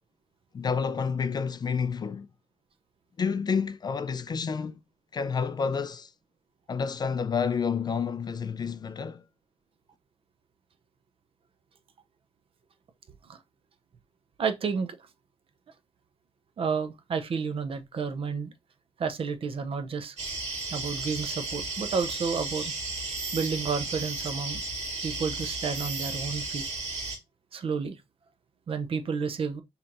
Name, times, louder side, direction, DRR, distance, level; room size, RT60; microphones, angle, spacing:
voice 1, 0.5-2.3 3.2-4.8 5.1-6.1 6.7-9.2, left 6 dB, 35° left, 0.3 m, -29 dB
voice 2, 14.4-15.0 16.6-18.5 19.0-20.2 20.7-22.7 23.3-24.6 25.0-26.6 27.5-28.0 28.7-29.6, right 5 dB, 55° right, 0.6 m, -31 dB
sound 1, 20.2-27.2, right 3 dB, 80° right, 1.8 m, -34 dB
5.5 x 2.8 x 2.5 m
cardioid pair, 115°, 12 cm